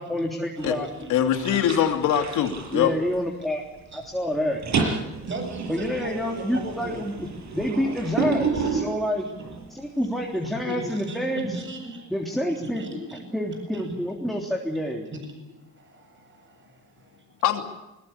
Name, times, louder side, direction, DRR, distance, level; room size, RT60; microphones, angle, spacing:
voice 1, 0.0-0.9 2.7-3.6 3.9-4.6 5.7-7.3 7.5-9.3 9.7-11.6 12.1-12.9 13.3-15.1, equal, ahead, 0 dB, 3.4 m, -28 dB
voice 2, 0.6-1.1 1.5-1.6 3.9-4.0 4.7-5.0 5.3-7.0 7.4-7.5 8.5-8.7 10.7-12.1 12.5-13.3 13.8-14.0 15.8-16.7, right 1 dB, 40° right, 6 dB, 7.9 m, -37 dB
sound 1, 0.6-1.0 1.3-3.5 3.8-4.1 4.4-9.7, right 4 dB, 65° right, 6.5 m, -30 dB
voice 3, 1.1-2.9 10.7-10.8 11.4-11.5 17.4-17.6, left 10 dB, 90° left, 4 dB, 3.0 m, -23 dB
21.5 x 21.5 x 8.4 m, 1.0 s
cardioid pair, 90°, 30 cm